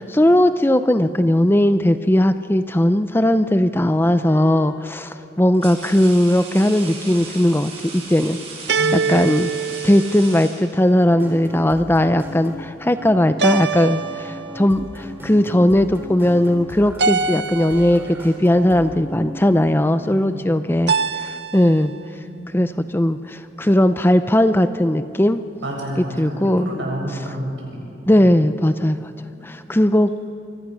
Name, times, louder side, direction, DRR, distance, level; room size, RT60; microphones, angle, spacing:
voice 1, 0.0-8.4 8.9-9.5 9.8-20.9 21.2-21.9 22.5-25.4 26.2-26.7 28.1-29.0 29.4-30.3, left 1 dB, 10° left, 11 dB, 0.6 m, -18 dB
sound 1, 4.0-4.3 5.1-11.1, right 4 dB, 35° right, 5.8 m, -37 dB
sound 2, 4.3-4.9 8.7-10.7 13.4-14.8 17.0-18.2 20.9-21.9, right 4 dB, 65° right, 0.8 m, -24 dB
voice 2, 8.8-9.3 20.0-20.5 22.2-22.8 25.6-27.9 28.1-28.4 29.3-29.4, right 1 dB, 85° right, -1 dB, 7.5 m, -30 dB
sound 3, 11.0-19.5, equal, 15° right, 3.8 m, -37 dB
27.0 x 24.0 x 6.3 m, 2.7 s
head